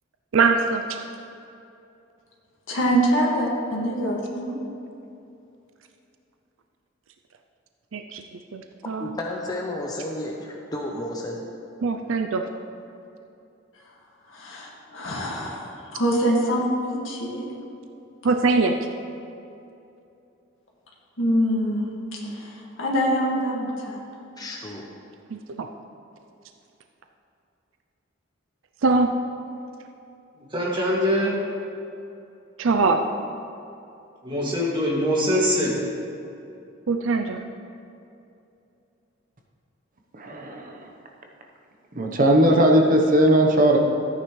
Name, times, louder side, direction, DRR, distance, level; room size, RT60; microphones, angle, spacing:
voice 1, 0.3-0.8 7.9-8.2 8.5-9.2 11.8-12.4 18.2-18.8 25.3-25.4 28.8-29.1 32.6-33.0 36.9-37.4, right 4 dB, 75° right, 5 dB, 0.5 m, -22 dB
voice 2, 2.7-4.6 14.3-17.5 21.2-21.9 22.3-24.0, equal, 75° left, -3 dB, 1.9 m, -24 dB
voice 3, 9.0-11.4 24.4-24.8, left 1 dB, 20° left, -1 dB, 0.8 m, -32 dB
voice 4, 30.5-31.3 34.2-35.7, equal, 25° right, -5 dB, 2.3 m, -23 dB
voice 5, 40.2-40.9 41.9-43.8, right 1 dB, 45° right, 1 dB, 1.0 m, -18 dB
13.5 x 9.4 x 3.2 m, 2.7 s
head